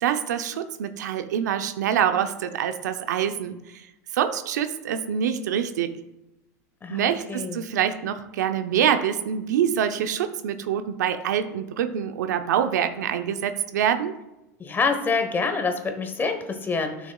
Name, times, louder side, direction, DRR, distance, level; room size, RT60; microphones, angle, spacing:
voice 1, 0.0-3.9 4.1-6.0 6.9-14.1, right 9 dB, 80° right, 9 dB, 0.6 m, -25 dB
voice 2, 6.8-7.6 14.6-17.1, left 4 dB, 20° left, 6 dB, 1.1 m, -27 dB
11.5 x 6.2 x 2.3 m, 0.93 s
hypercardioid pair, 100°, 9 cm